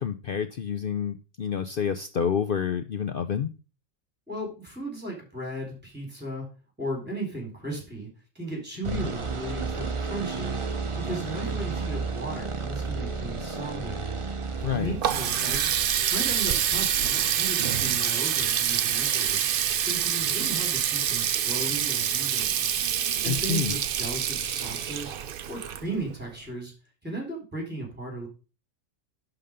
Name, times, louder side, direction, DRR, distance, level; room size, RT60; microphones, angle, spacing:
voice 1, 0.0-3.5 8.9-9.1 14.6-14.9 23.3-23.7, left 8 dB, 70° left, 9 dB, 0.5 m, -28 dB
voice 2, 4.3-6.5 6.8-8.1 8.3-10.6 11.0-14.1 14.7-19.4 19.8-22.7 23.2-26.7 27.0-28.3, right 2 dB, 5° right, 1 dB, 3.9 m, -36 dB
sound 1, 8.8-16.8, right 4 dB, 35° right, 0.5 m, -33 dB
Water tap faucet, 14.6-26.3, right 9 dB, 90° right, 0.4 m, -26 dB
11.0 x 4.0 x 5.0 m, 0.33 s
omnidirectional pair, 1.6 m